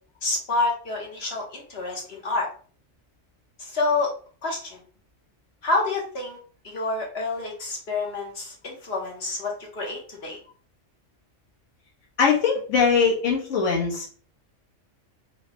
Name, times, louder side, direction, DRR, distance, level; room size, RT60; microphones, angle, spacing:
voice 1, 0.2-2.5 3.6-4.1 4.4-4.8 5.6-6.4 6.6-10.4, left 3 dB, 55° left, -1 dB, 1.2 m, -28 dB
voice 2, 12.2-14.1, left 5 dB, 70° left, -2 dB, 1.5 m, -21 dB
3.9 x 2.2 x 2.9 m, 0.41 s
omnidirectional pair, 1.3 m